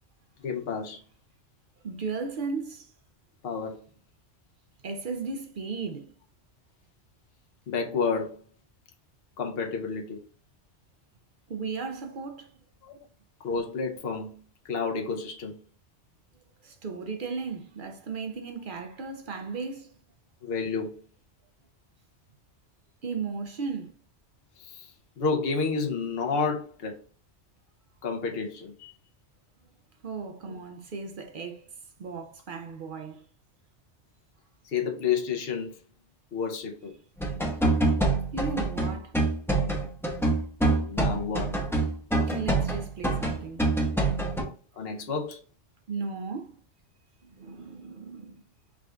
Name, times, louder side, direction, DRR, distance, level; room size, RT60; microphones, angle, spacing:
voice 1, 0.4-1.0 3.4-3.8 7.7-8.4 9.4-10.2 12.8-13.0 13.4-15.5 20.4-21.0 24.6-27.0 28.0-28.9 34.6-35.8 36.3-36.9 40.7-41.5 44.8-45.4, left 5 dB, 60° left, 1.0 m, -30 dB
voice 2, 1.8-2.9 4.8-6.1 11.5-12.5 16.6-19.9 23.0-23.9 30.0-31.6 32.0-33.2 38.3-39.1 42.3-43.6 45.9-46.6 47.2-48.4, right 4 dB, 55° right, 0.7 m, -35 dB
sound 1, 37.2-44.4, right 2 dB, ahead, 0.8 m, -25 dB
4.9 x 2.5 x 3.4 m
omnidirectional pair, 1.2 m